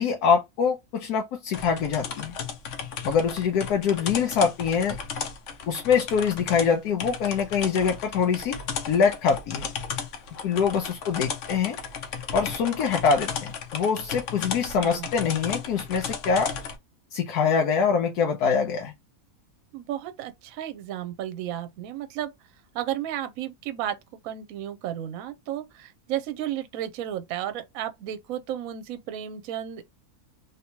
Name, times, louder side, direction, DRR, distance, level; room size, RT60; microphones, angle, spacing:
voice 1, 0.0-2.3 3.0-5.0 5.7-8.6 8.9-9.7 10.4-11.8 12.3-16.5 17.1-18.9, left 6 dB, 85° left, 1.2 m, -24 dB
sound 1, 1.5-16.8, left 6 dB, 60° left, 1.0 m, -35 dB
voice 2, 19.7-22.3 22.7-24.0 24.2-29.8, right 11 dB, 70° right, 1.0 m, -33 dB
3.4 x 2.9 x 2.8 m
omnidirectional pair, 1.6 m